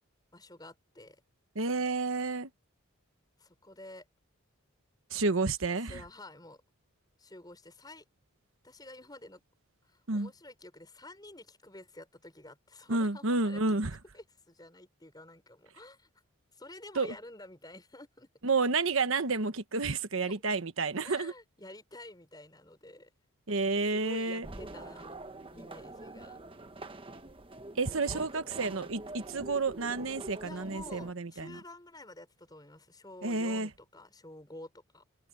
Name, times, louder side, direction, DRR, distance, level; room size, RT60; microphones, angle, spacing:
voice 1, 0.3-1.2 3.4-4.1 5.7-6.6 7.2-8.0 8.6-9.4 9.8-13.6 14.1-16.1 16.5-18.3 20.2-20.4 21.0-23.1 23.9-25.2 25.5-26.4 28.0-28.2 28.6-28.9 30.4-35.0, left 1 dB, 20° left, 5.0 m, -50 dB
voice 2, 1.5-2.5 5.1-6.0 10.1-10.3 12.9-14.0 16.9-17.1 18.4-21.3 23.5-24.5 27.7-31.6 33.2-33.7, right 3 dB, 70° right, 1.2 m, -30 dB
sound 1, 24.4-31.1, right 2 dB, 25° right, 1.1 m, -45 dB
head